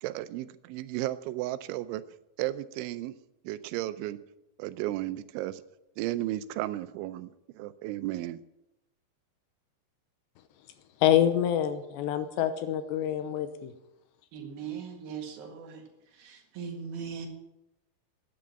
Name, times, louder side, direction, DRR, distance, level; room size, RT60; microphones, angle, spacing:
voice 1, 0.0-2.0 2.4-3.1 3.4-4.2 4.6-5.6 6.0-8.4, right 15 dB, 90° right, 14 dB, 3.1 m, -34 dB
voice 2, 11.0-13.7, left 11 dB, 80° left, 10 dB, 2.9 m, -26 dB
voice 3, 14.3-15.8 16.2-17.3, right 6 dB, 60° right, 3 dB, 3.3 m, -39 dB
12.5 x 9.5 x 8.8 m, 0.92 s
omnidirectional pair, 5.4 m